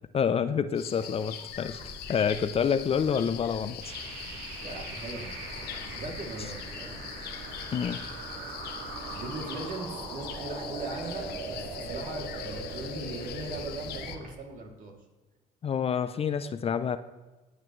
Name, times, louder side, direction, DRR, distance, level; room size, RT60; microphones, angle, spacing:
voice 1, 0.1-3.9 7.7-8.0 15.6-17.0, left 7 dB, 35° left, 12 dB, 0.5 m, -28 dB
sound 1, 0.7-14.2, left 9 dB, 75° left, 1.1 m, -42 dB
sound 2, 1.5-14.0, right 1 dB, 35° right, 3.1 m, -48 dB
sound 3, 3.8-14.3, right 3 dB, 80° right, 2.6 m, -40 dB
voice 2, 4.6-7.0 9.1-15.0, right 2 dB, 55° right, 1 dB, 2.8 m, -40 dB
20.0 x 8.1 x 3.2 m, 1.2 s
cardioid pair, 110°, 17 cm